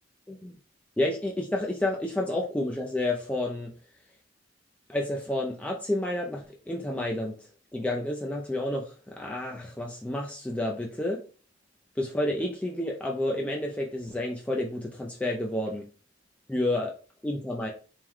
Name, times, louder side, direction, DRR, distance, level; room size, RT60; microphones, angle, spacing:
voice 1, 1.0-3.7 4.9-11.2 12.0-15.8 16.5-16.9 17.2-17.7, left 1 dB, 5° left, -1 dB, 0.4 m, -30 dB
4.5 x 2.2 x 3.6 m, 0.39 s
head